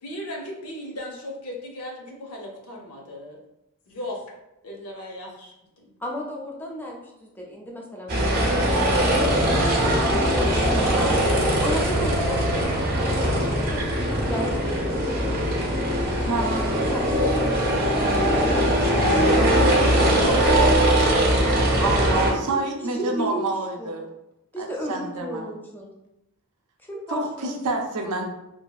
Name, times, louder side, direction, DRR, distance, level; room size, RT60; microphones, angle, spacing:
voice 1, 0.0-3.4 3.9-4.3 4.6-5.9, left 1 dB, 75° left, 0 dB, 0.7 m, -37 dB
voice 2, 6.0-8.7 8.9-11.0 11.6-15.8 16.2-18.9 19.2-19.5 19.8-21.4 22.0-22.6 22.9-23.5 23.8-23.9 24.5-25.9 26.8-27.5, equal, 10° left, -1 dB, 0.4 m, -34 dB
sound 1, 8.1-22.3, right 1 dB, 45° right, 0.6 m, -21 dB
voice 3, 9.2-9.7 10.9-12.1 16.2-16.9 21.7-24.1 24.6-25.5 27.1-28.3, right 2 dB, 85° right, 3 dB, 0.5 m, -29 dB
2.7 x 2.3 x 2.3 m, 0.88 s
head